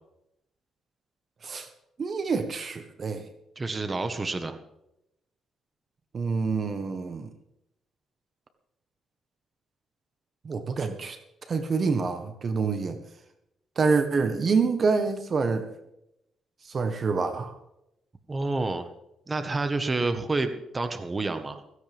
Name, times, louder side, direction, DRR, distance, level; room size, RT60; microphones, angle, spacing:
voice 1, 2.0-3.3 6.1-7.3 10.4-11.2 11.5-13.0 13.8-15.7 16.6-17.5, right 4 dB, 45° right, 8 dB, 1.4 m, -27 dB
voice 2, 3.6-4.6 18.3-18.9 19.3-21.6, right 3 dB, 25° right, 8 dB, 1.5 m, -29 dB
16.5 x 16.0 x 3.6 m, 0.83 s
cardioid pair, 90°, 0 cm